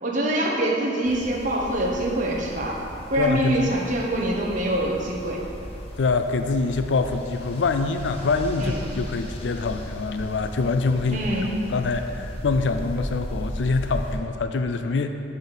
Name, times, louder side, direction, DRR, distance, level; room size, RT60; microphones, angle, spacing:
voice 1, 0.0-2.8 3.1-5.4 8.6-8.8 11.1-11.5, right 1 dB, 45° right, -3 dB, 1.1 m, -25 dB
sound 1, 1.0-14.2, equal, 35° left, 1.0 m, -36 dB
voice 2, 3.2-3.7 6.0-11.2 11.7-15.2, left 4 dB, 80° left, 8 dB, 0.4 m, -25 dB
9.1 x 4.2 x 7.0 m, 2.8 s
head